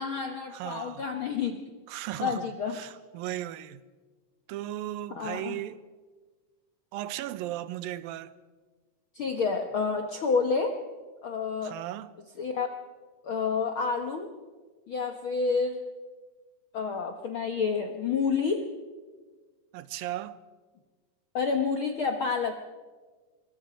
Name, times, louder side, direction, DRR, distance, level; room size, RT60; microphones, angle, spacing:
voice 1, 0.0-1.6 2.2-2.8 5.1-5.5 9.1-10.8 11.2-11.7 12.4-12.7 13.2-14.3 14.9-15.8 16.7-18.6 21.3-22.5, left 5 dB, 70° left, 1.2 m, -29 dB
voice 2, 0.5-1.0 1.9-3.8 4.5-5.8 6.9-8.4 11.6-12.1 19.7-20.4, right 13 dB, 85° right, 2.6 m, -36 dB
24.0 x 23.0 x 5.1 m
omnidirectional pair, 4.1 m